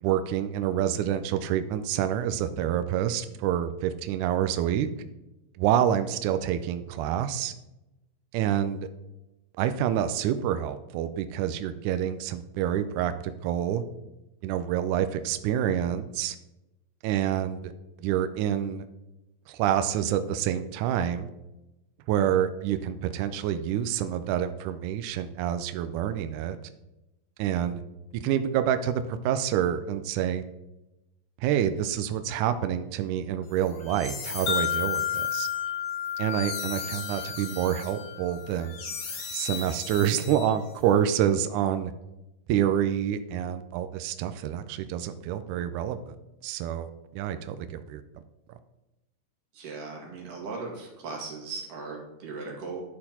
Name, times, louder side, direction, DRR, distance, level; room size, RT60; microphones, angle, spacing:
voice 1, 0.0-4.9 5.6-7.5 8.3-8.9 9.6-13.8 14.4-16.4 17.0-17.7 18.0-18.9 19.5-21.3 22.1-26.6 27.4-27.8 28.2-30.4 31.4-35.5 36.2-38.8 39.3-41.9 42.5-46.2 46.4-48.0, right 10 dB, 85° right, 10 dB, 1.7 m, -27 dB
sound 1, 33.6-40.8, left 4 dB, 80° left, 1.0 m, -39 dB
Wind chime, 34.5-38.8, left 9 dB, 60° left, 1.7 m, -32 dB
voice 2, 49.5-52.8, right 4 dB, 65° right, -2 dB, 3.4 m, -38 dB
12.0 x 4.3 x 4.2 m, 0.96 s
omnidirectional pair, 4.1 m